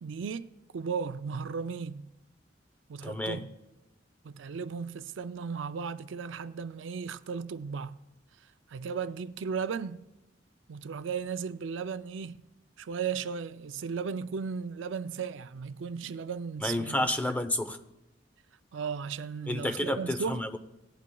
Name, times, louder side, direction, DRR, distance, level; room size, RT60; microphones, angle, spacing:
voice 1, 0.0-2.1 2.9-3.5 4.2-8.0 8.7-10.0 10.7-12.4 12.8-17.1 18.7-20.4, right 6 dB, 75° right, 0.4 m, -35 dB
voice 2, 3.0-3.4 16.6-17.8 19.5-20.6, left 1 dB, 10° left, 0.6 m, -30 dB
18.0 x 11.5 x 2.3 m
head